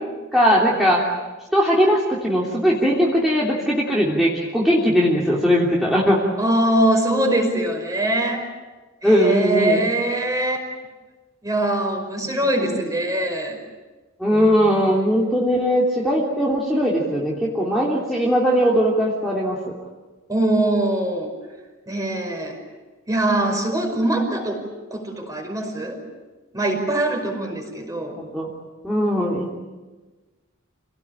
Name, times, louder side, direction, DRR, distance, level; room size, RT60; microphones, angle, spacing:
voice 1, 0.3-1.1 1.5-6.2 9.0-9.8 12.6-12.8 14.2-19.6 28.2-28.5 28.8-29.6, equal, ahead, -5 dB, 3.2 m, -19 dB
voice 2, 6.4-8.5 9.0-10.6 11.4-13.6 14.3-14.7 20.3-21.3 21.9-22.6 23.1-26.0 26.5-28.2, right 1 dB, 15° right, 3 dB, 5.3 m, -22 dB
28.0 x 18.5 x 8.9 m, 1.3 s
head